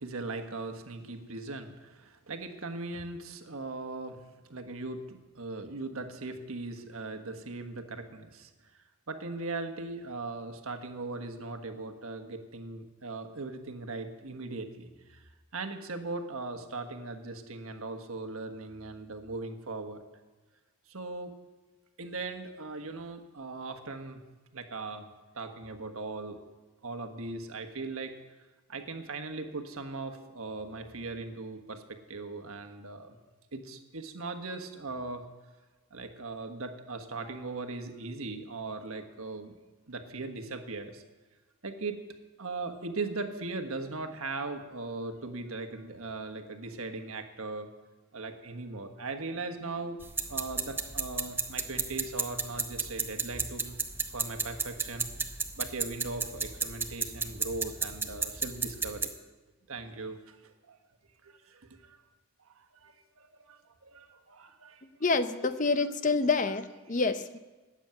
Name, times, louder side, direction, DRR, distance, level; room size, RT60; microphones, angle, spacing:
voice 1, 0.0-4.2 4.5-8.5 9.1-15.2 15.5-20.0 20.9-21.3 22.0-24.2 24.5-25.1 25.3-26.4 26.8-28.1 28.7-33.2 33.5-35.2 35.9-39.5 39.9-41.0 41.6-42.0 42.4-47.7 48.1-50.0 50.3-53.8 54.1-55.3 55.6-59.1 59.7-60.8 61.2-62.0 62.5-65.0, right 3 dB, 75° right, 6 dB, 1.4 m, -39 dB
sound 1, 50.0-59.1, right 4 dB, 10° right, 0.6 m, -33 dB
voice 2, 65.0-67.4, left 4 dB, 35° left, 11 dB, 0.6 m, -27 dB
13.5 x 9.0 x 9.0 m, 1.2 s
head